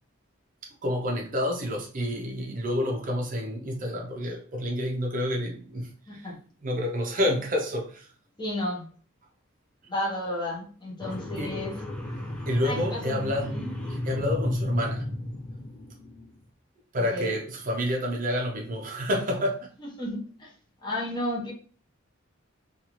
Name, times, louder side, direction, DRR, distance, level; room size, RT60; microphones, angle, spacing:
voice 1, 0.8-6.3 6.6-8.1 11.4-11.6 12.5-13.6 14.1-15.1 16.9-19.7, left 1 dB, 40° right, 0.6 m, -29 dB
voice 2, 6.1-6.4 8.4-8.9 9.9-11.7 12.6-13.2 13.5-13.7 17.0-17.4 19.8-20.5 20.8-21.5, left 1 dB, 20° left, 0.9 m, -32 dB
sound 1, 11.0-16.3, left 1 dB, 5° left, 0.4 m, -33 dB
2.7 x 2.4 x 2.9 m
head